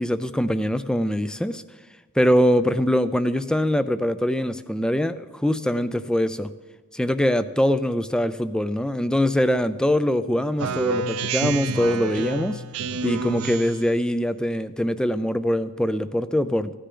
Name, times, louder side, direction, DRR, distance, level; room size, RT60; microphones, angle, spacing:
voice 1, 0.0-1.6 2.2-6.5 6.9-12.6 13.0-16.7, equal, 5° left, 13 dB, 0.4 m, -23 dB
Speech synthesizer, 10.6-13.9, right 4 dB, 75° right, 0.5 m, -28 dB
16.0 x 10.0 x 3.8 m, 1.4 s
head